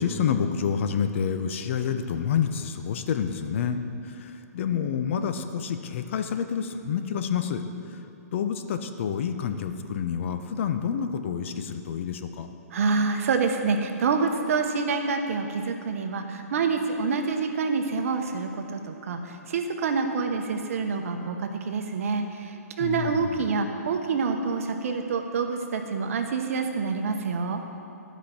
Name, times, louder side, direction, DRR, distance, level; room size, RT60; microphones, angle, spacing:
voice 1, 0.0-7.6 7.9-8.0 8.3-12.5 22.8-23.4, left 7 dB, 50° left, 8 dB, 0.7 m, -28 dB
voice 2, 12.7-19.2 19.5-22.2 22.8-27.6, right 4 dB, 55° right, 5 dB, 1.0 m, -27 dB
11.5 x 5.1 x 5.9 m, 2.8 s
hypercardioid pair, 145°, 9 cm